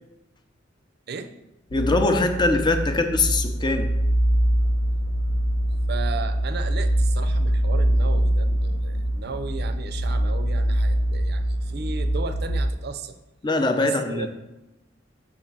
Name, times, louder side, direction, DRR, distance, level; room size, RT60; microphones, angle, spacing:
sound 1, 1.7-12.7, right 1 dB, 80° left, 0.7 m, -23 dB
voice 1, 1.7-3.9 13.4-14.3, left 2 dB, 25° left, 6 dB, 0.6 m, -22 dB
voice 2, 5.9-13.2 13.8-14.3, right 4 dB, 55° right, 10 dB, 0.5 m, -35 dB
6.5 x 4.0 x 5.9 m, 0.97 s
head